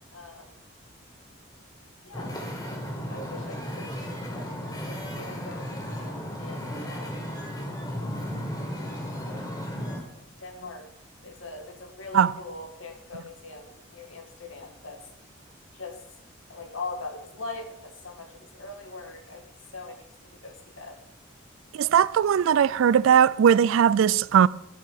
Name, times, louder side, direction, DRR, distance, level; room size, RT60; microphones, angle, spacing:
voice 1, 0.1-0.5 2.0-2.3 3.1-7.2 8.9-10.9 11.2-15.0 15.7-16.0 16.5-19.4 19.7-21.0, left 3 dB, 75° left, 1.7 m, -42 dB
Wind / Ocean, 2.1-10.0, equal, 20° left, 1.7 m, -35 dB
voice 2, 21.8-24.5, right 8 dB, 75° right, 0.3 m, -19 dB
12.0 x 4.7 x 7.0 m
head